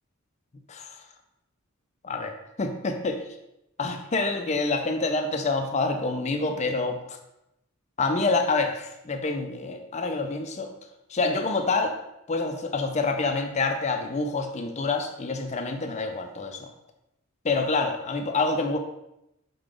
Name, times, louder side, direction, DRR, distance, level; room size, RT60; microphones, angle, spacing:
voice 1, 2.0-3.2 3.8-7.2 8.0-10.7 11.1-12.0 12.3-16.7 17.4-18.8, left 3 dB, 30° left, 5 dB, 0.5 m, -27 dB
4.9 x 3.9 x 4.9 m, 0.87 s
head